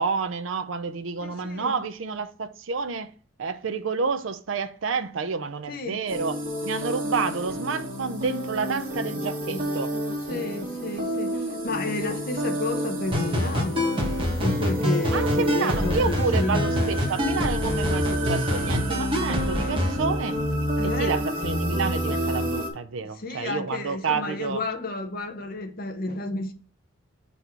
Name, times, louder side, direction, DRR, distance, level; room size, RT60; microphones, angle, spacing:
voice 1, 0.0-3.1 3.4-6.4 6.6-10.0 15.1-20.4 20.8-24.6, right 5 dB, 80° right, 0.5 m, -29 dB
voice 2, 1.2-1.7 5.7-6.0 9.5-9.7 10.3-14.1 14.4-16.7 20.8-21.1 23.2-26.5, left 2 dB, 45° left, 0.9 m, -31 dB
sound 1, 6.1-22.7, equal, 45° right, 2.1 m, -29 dB
sound 2, 13.1-20.0, left 1 dB, 25° right, 1.6 m, -26 dB
6.9 x 4.2 x 4.5 m
head